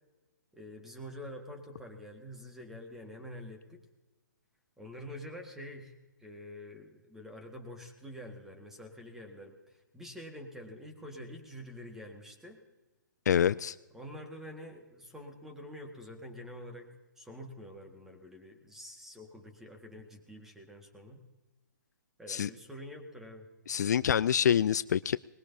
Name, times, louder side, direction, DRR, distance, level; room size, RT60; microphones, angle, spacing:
voice 1, 0.5-3.8 4.8-5.9 6.2-12.6 13.9-16.9 17.2-21.2 22.2-23.5, equal, 5° right, 1.7 m, -47 dB
voice 2, 13.3-13.7 22.3-22.5 23.7-25.2, left 8 dB, 60° left, 0.4 m, -26 dB
20.5 x 20.0 x 2.8 m
hypercardioid pair, 140°, 10 cm